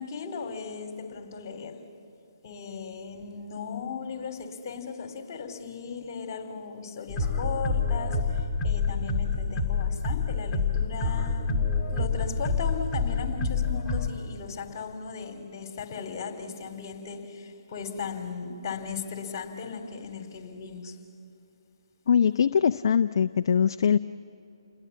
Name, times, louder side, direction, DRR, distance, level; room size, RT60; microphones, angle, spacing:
voice 1, 0.0-1.8 2.4-21.0, left 5 dB, 40° left, 6 dB, 3.2 m, -37 dB
sound 1, 7.1-14.1, left 4 dB, 10° left, 2.1 m, -27 dB
voice 2, 22.1-24.0, left 7 dB, 55° left, 10 dB, 0.5 m, -22 dB
29.5 x 21.5 x 8.4 m, 2.8 s
hypercardioid pair, 150°, 3 cm